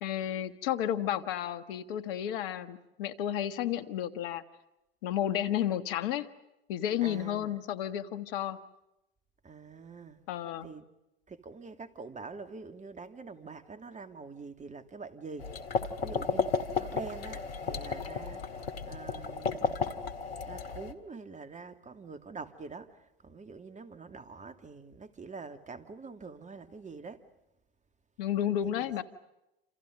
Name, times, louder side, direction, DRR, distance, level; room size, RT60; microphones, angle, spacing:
voice 1, 0.0-4.4 5.0-6.3 6.7-8.6 10.3-10.7 28.2-29.0, left 11 dB, 65° left, 1.6 m, -32 dB
voice 2, 7.0-7.6 9.4-10.2 10.6-10.8 11.3-15.6 16.0-20.1 20.4-27.2 28.6-29.0, right 4 dB, 25° right, 2.7 m, -45 dB
sound 1, 15.4-20.9, left 4 dB, 80° left, 1.9 m, -33 dB
29.0 x 28.5 x 5.3 m
hypercardioid pair, 75°, 29 cm